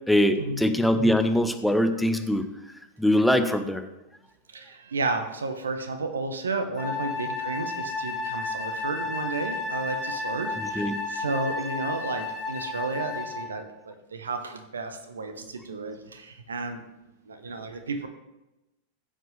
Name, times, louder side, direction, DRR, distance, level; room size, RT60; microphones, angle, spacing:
voice 1, 0.1-2.5 3.0-3.8 10.6-10.9, left 1 dB, ahead, 8 dB, 0.9 m, -22 dB
voice 2, 4.5-16.8 17.3-18.1, right 3 dB, 70° right, 8 dB, 1.1 m, -32 dB
Wind instrument woodwind instrument, 6.8-13.5, left 3 dB, 20° left, 4.0 m, -32 dB
15.5 x 7.6 x 3.3 m, 0.98 s
figure-of-eight pair, 90°, 0 cm